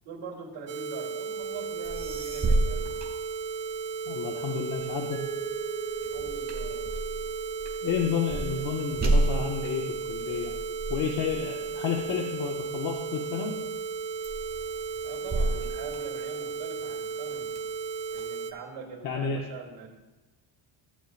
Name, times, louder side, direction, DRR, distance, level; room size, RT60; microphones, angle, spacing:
voice 1, 0.0-2.9 6.1-7.0 15.0-17.5 18.1-19.9, right 5 dB, 85° right, -3 dB, 2.5 m, -43 dB
sound 1, 0.7-18.5, right 5 dB, 60° right, 0.7 m, -35 dB
sound 2, 1.6-1.7 1.8-3.9 4.4-13.1 13.6-13.9 14.2-16.7 17.2-18.2, right 2 dB, 20° right, 1.2 m, -32 dB
voice 2, 4.1-5.2 7.8-10.5 10.9-13.6 19.0-19.4, left 7 dB, 45° left, 0 dB, 0.8 m, -31 dB
Mallet percussion, 5.1-8.0, right 7 dB, 15° left, 0.5 m, -41 dB
15.0 x 7.7 x 2.4 m, 1.1 s
cardioid pair, 175°, 49 cm